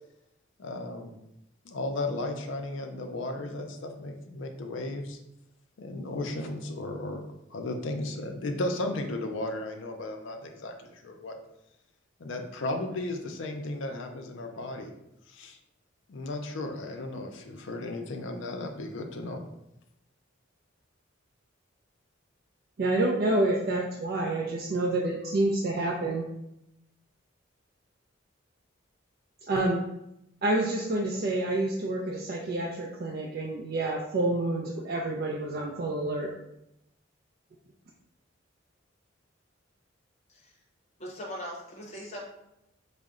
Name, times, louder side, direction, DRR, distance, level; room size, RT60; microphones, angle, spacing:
voice 1, 0.6-1.1 1.6-5.2 5.8-11.4 12.2-14.9 15.3-15.6 16.1-19.4, left 2 dB, 70° left, 4 dB, 0.4 m, -35 dB
voice 2, 22.8-26.2 29.5-29.9 30.4-36.3, right 2 dB, 50° right, -2 dB, 0.4 m, -28 dB
voice 3, 41.0-42.2, equal, 35° left, -1 dB, 0.7 m, -40 dB
3.8 x 2.1 x 3.6 m, 0.85 s
head